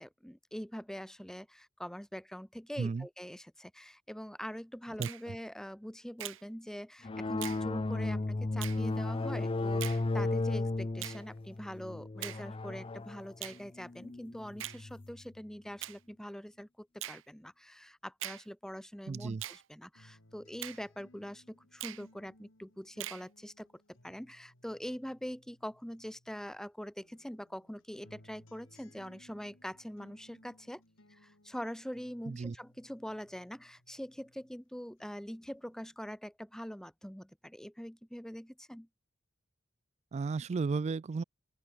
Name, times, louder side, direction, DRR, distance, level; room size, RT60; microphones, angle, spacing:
voice 1, 0.0-30.8 31.1-38.9, equal, 5° left, 0.8 m, -44 dB
voice 2, 2.8-3.1 5.0-5.4 19.1-19.4 32.3-32.6 40.1-41.2, right 4 dB, 35° right, 0.3 m, -34 dB
Finger snapping, 5.0-5.2 6.2-6.4 7.4-7.6 8.6-8.8 9.8-10.0 11.0-11.2 12.2-12.4 13.4-13.6 14.6-14.8 15.8-16.0 17.0-17.2 18.2-18.4 19.4-19.6 20.6-20.8 21.8-22.0 23.0-23.2, right 14 dB, 70° right, 0.6 m, -41 dB
sound 1, 7.0-15.2, left 2 dB, 30° left, 0.5 m, -34 dB
sound 2, 19.9-26.6 27.0-34.6 35.0-35.9, left 1 dB, 90° left, 3.7 m, -63 dB
open air
head